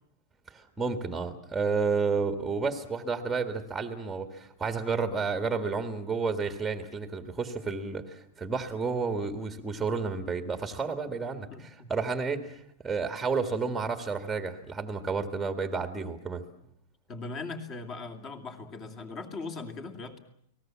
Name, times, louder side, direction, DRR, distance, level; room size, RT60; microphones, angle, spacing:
voice 1, 0.5-11.5 11.9-16.4, right 4 dB, 5° right, 7 dB, 1.7 m, -31 dB
voice 2, 11.5-11.9 17.1-20.2, left 3 dB, 25° left, 6 dB, 2.6 m, -39 dB
30.0 x 19.5 x 7.4 m, 0.69 s
supercardioid pair, 165°, 0 cm